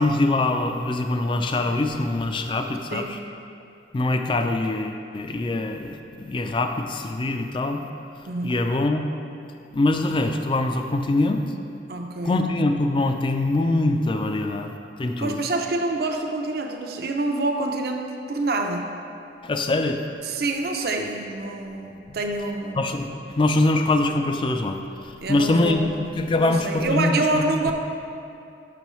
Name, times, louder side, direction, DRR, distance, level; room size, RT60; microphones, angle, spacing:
voice 1, 0.0-3.2 3.9-7.8 8.4-9.0 9.7-11.4 12.2-14.7 15.0-15.4 19.4-20.0 22.1-22.2 22.8-27.7, left 2 dB, 30° left, 6 dB, 0.3 m, -23 dB
voice 2, 8.3-8.7 11.9-12.4 15.2-18.0 18.3-19.0 20.2-22.8 25.2-26.1 26.4-27.7, right 2 dB, 60° right, 3 dB, 0.5 m, -27 dB
6.8 x 6.1 x 3.0 m, 2.6 s
head